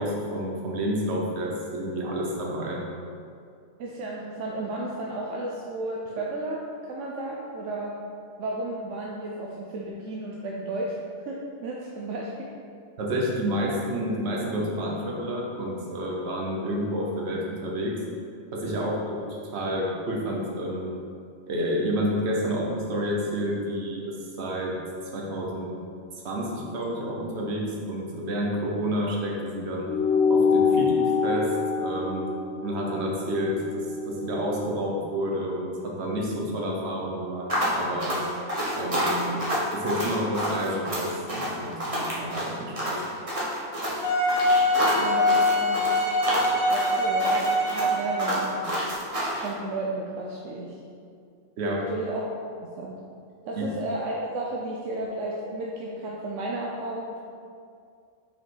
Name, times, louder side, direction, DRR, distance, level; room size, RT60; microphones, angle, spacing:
voice 1, 0.0-2.8 13.0-18.0 18.5-20.9 21.5-24.8 25.1-25.8 26.2-29.9 30.3-32.2 32.6-38.2 38.8-39.4 39.7-43.0 51.6-51.9 53.6-53.7, equal, 60° right, -2 dB, 1.2 m, -29 dB
voice 2, 3.8-8.0 8.4-11.0 11.2-12.5 45.0-45.8 46.7-48.8 49.3-50.8 51.9-52.3 52.8-53.0 53.4-57.2, right 2 dB, 75° right, -3 dB, 1.0 m, -33 dB
sound 1, 29.9-34.7, left 5 dB, 80° left, 1.3 m, -25 dB
sound 2, 37.5-49.5, equal, 30° right, 1.2 m, -28 dB
Wind instrument woodwind instrument, 44.0-48.5, left 1 dB, 55° left, 1.2 m, -23 dB
5.4 x 4.8 x 3.8 m, 2.3 s
omnidirectional pair, 1.3 m